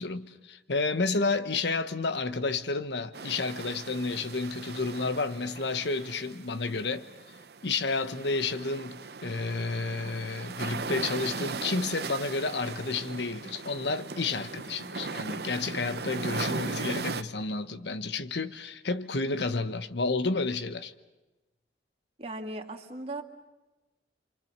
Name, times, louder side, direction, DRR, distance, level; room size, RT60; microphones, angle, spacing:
voice 1, 0.0-7.1 7.6-20.9, left 3 dB, 80° left, 1.1 m, -31 dB
sound 1, 3.1-17.2, right 4 dB, 65° right, 0.8 m, -38 dB
voice 2, 22.2-23.2, right 2 dB, 35° right, 2.1 m, -37 dB
28.0 x 26.0 x 6.7 m
head